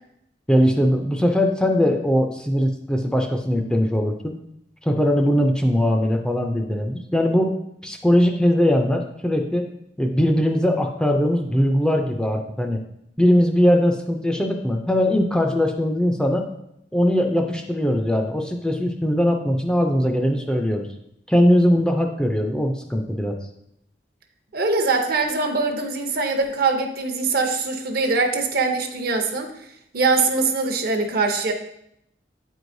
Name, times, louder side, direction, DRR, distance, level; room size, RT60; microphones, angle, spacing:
voice 1, 0.5-4.3 4.8-7.5 7.8-9.7 10.0-12.8 13.2-16.5 16.9-20.9 21.3-23.4, equal, 5° left, 3 dB, 0.4 m, -20 dB
voice 2, 24.5-29.5 29.9-31.5, right 3 dB, 60° right, 4 dB, 0.7 m, -22 dB
8.2 x 4.7 x 2.6 m, 0.77 s
head